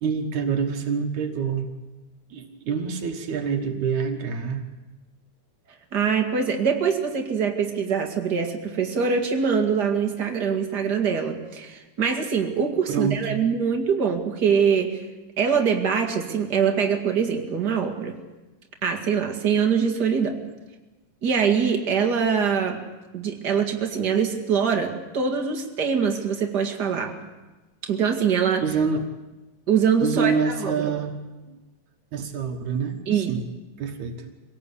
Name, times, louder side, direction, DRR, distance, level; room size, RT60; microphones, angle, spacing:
voice 1, 0.0-1.7 2.3-4.7 12.9-13.4 28.6-29.0 30.0-31.1 31.5-31.6 32.1-33.0 33.3-33.4 33.8-34.3, right 6 dB, 75° right, 4 dB, 2.8 m, -26 dB
voice 2, 5.9-15.1 15.4-18.2 18.8-20.4 21.2-22.8 23.1-27.2 27.8-28.7 29.7-30.9 33.1-33.3, right 6 dB, 35° right, 3 dB, 2.4 m, -23 dB
25.0 x 18.0 x 8.4 m, 1.1 s
omnidirectional pair, 3.4 m